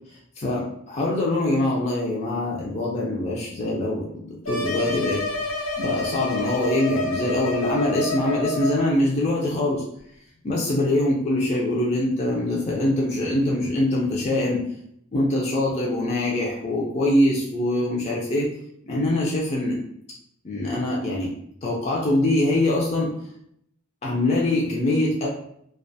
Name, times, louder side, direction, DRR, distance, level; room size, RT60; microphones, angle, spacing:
voice 1, 0.1-5.2 5.8-9.8 10.4-14.6 15.1-18.5 18.8-19.8 20.4-21.3 21.6-23.1 24.0-25.3, left 1 dB, 35° left, -3 dB, 0.4 m, -23 dB
sound 1, 4.4-8.9, left 2 dB, 85° left, 0.9 m, -28 dB
2.4 x 2.2 x 2.6 m, 0.70 s
head